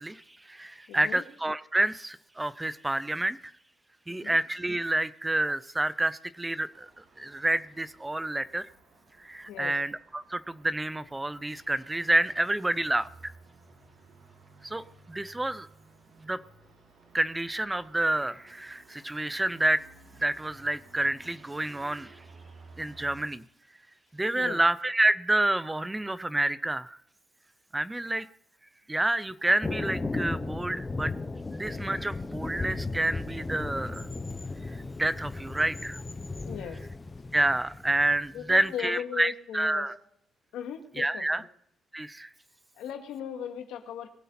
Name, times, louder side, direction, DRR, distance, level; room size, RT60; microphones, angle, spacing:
voice 1, 0.0-3.4 4.1-8.7 9.2-13.3 14.6-15.7 16.2-16.4 17.1-19.9 20.2-22.2 22.8-23.4 24.1-27.0 27.7-28.3 28.9-31.1 31.5-34.1 34.7-36.0 37.3-39.9 41.0-41.4 41.9-42.3, right 2 dB, 10° right, 16 dB, 0.5 m, -29 dB
voice 2, 0.9-1.2 4.1-4.4 9.5-9.8 24.3-24.6 36.5-36.9 38.3-39.9 40.5-41.5 42.8-44.1, left 9 dB, 90° left, 4 dB, 2.3 m, -37 dB
Traffic noise roadway noise, 6.7-23.3, right 3 dB, 60° right, 6.1 m, -56 dB
Thunder, 29.6-38.6, left 3 dB, 20° left, 1.1 m, -36 dB
22.0 x 8.2 x 4.2 m, 0.67 s
cardioid pair, 125°, 0 cm